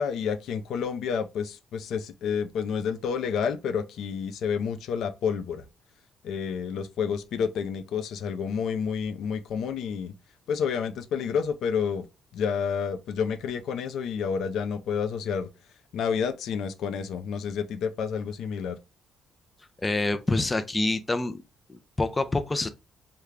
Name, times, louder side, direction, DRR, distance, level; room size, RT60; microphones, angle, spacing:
voice 1, 0.0-5.6 6.2-10.1 10.5-12.1 12.3-15.5 15.9-18.8, left 6 dB, 75° left, 0.5 m, -29 dB
voice 2, 19.8-21.4 21.7-22.7, left 2 dB, 20° left, 0.5 m, -26 dB
3.2 x 2.2 x 3.6 m
cardioid pair, 90°, 0 cm